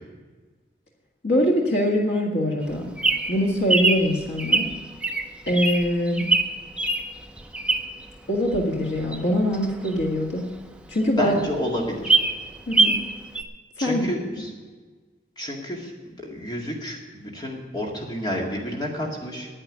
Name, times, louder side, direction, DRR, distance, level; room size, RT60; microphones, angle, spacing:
voice 1, 1.2-2.9 3.3-4.7 5.5-6.3 8.3-10.4 10.9-11.4 12.7-13.0 13.8-14.1, equal, 85° left, -1 dB, 1.8 m, -23 dB
Bird vocalization bird call bird song, 2.6-8.1 8.5-10.7 11.1-11.2 11.4-11.5 11.8-13.1 13.3-13.4, right 3 dB, 5° right, 0.7 m, -23 dB
voice 2, 11.2-12.2 13.8-14.5 15.4-15.9 16.2-19.5, equal, 25° left, -1 dB, 2.0 m, -30 dB
9.8 x 8.9 x 9.5 m, 1.4 s
head